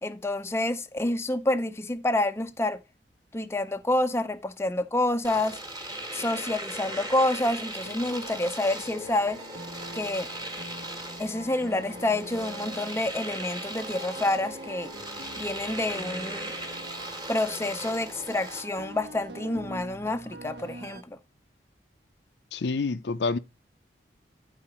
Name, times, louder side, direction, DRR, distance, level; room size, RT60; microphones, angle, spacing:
voice 1, 0.0-2.8 3.3-5.6 6.1-9.4 9.9-10.3 11.2-14.9 15.4-16.5 17.3-21.2, left 2 dB, 15° left, 0.5 m, -28 dB
Domestic sounds home sounds, 5.2-18.7, right 1 dB, 20° right, 1.4 m, -38 dB
sound 1, 6.7-21.0, right 1 dB, 75° right, 1.2 m, -44 dB
voice 2, 22.5-23.4, left 3 dB, 75° left, 0.5 m, -27 dB
10.5 x 4.9 x 4.2 m
head